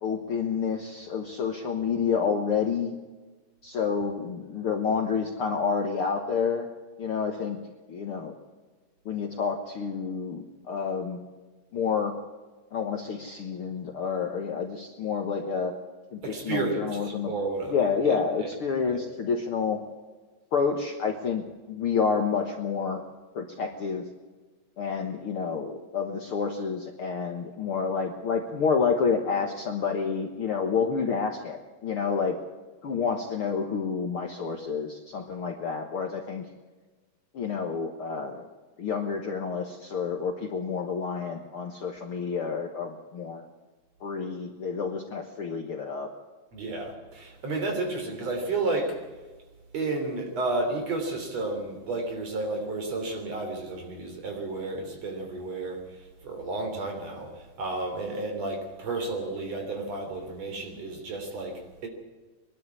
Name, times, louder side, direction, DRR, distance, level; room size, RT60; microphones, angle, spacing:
voice 1, 0.0-3.0 3.6-6.7 7.0-7.6 7.9-8.4 9.1-11.2 11.7-12.2 12.7-15.7 16.1-17.3 17.7-19.8 20.5-23.0 23.3-24.0 24.8-32.4 32.8-36.5 37.3-38.5 38.8-43.5 44.0-46.1, left 5 dB, 55° left, 3 dB, 1.7 m, -29 dB
voice 2, 16.2-17.7 18.0-18.5 18.9-19.0 46.5-49.0 49.7-61.9, right 3 dB, 50° right, 3 dB, 4.5 m, -32 dB
23.0 x 12.0 x 9.6 m, 1.3 s
omnidirectional pair, 3.9 m